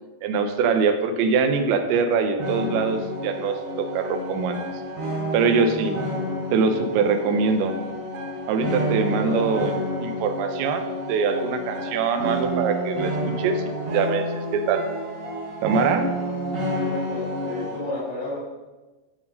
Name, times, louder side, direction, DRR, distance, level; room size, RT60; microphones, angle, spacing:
voice 1, 0.2-4.6 5.3-5.9 6.5-7.8 8.5-9.7 10.0-13.6 13.9-14.8 15.6-16.1, right 5 dB, 80° right, 7 dB, 3.1 m, -23 dB
sound 1, 2.4-17.8, equal, 50° right, 3.9 m, -29 dB
voice 2, 9.2-9.6 16.7-18.4, left 2 dB, 70° left, -10 dB, 5.2 m, -32 dB
13.0 x 5.9 x 5.3 m, 1.2 s
omnidirectional pair, 5.2 m